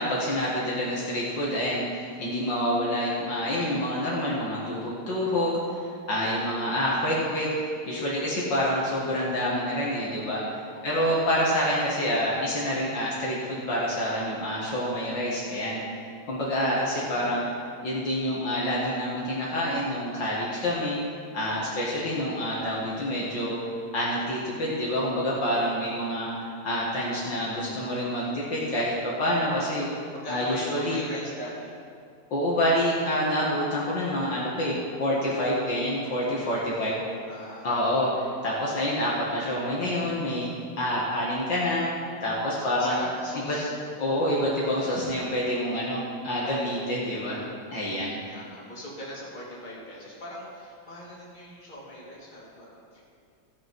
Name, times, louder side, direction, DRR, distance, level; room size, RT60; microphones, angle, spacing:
voice 1, 0.0-5.8 6.1-10.5 10.8-15.8 16.3-17.4 17.8-21.0 21.3-23.6 23.9-29.9 30.3-31.0 32.3-37.0 37.6-40.5 40.8-41.8 42.2-43.1 43.3-43.6 44.0-47.4 47.7-48.2, equal, 55° left, -6 dB, 2.4 m, -27 dB
voice 2, 10.7-11.3 30.1-31.8 36.6-37.7 42.6-43.7 45.2-45.3 48.2-53.0, equal, 20° left, -6 dB, 2.7 m, -41 dB
15.5 x 7.0 x 5.3 m, 2.4 s
omnidirectional pair, 2.4 m